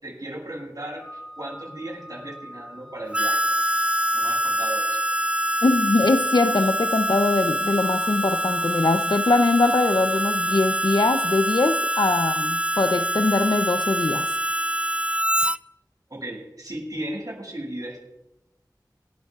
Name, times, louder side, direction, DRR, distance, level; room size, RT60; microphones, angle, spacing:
voice 1, 0.0-3.5 4.1-5.0 16.1-18.0, right 1 dB, 60° right, 6.9 m, -36 dB
Organ, 1.0-11.7, equal, 10° left, 1.3 m, -43 dB
Harmonica, 3.1-15.6, equal, 15° right, 0.4 m, -25 dB
voice 2, 5.6-14.3, left 3 dB, 85° left, 0.7 m, -22 dB
27.5 x 13.0 x 2.5 m
wide cardioid pair, 40°, 7 cm